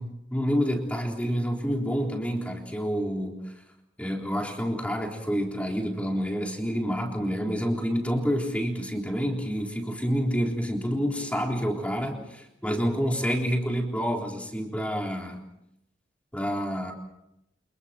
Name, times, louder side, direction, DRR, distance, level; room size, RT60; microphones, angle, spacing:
voice 1, 0.0-3.4 4.0-15.4 16.3-16.9, equal, 10° left, 1 dB, 3.7 m, -28 dB
29.0 x 28.5 x 4.4 m, 0.83 s
head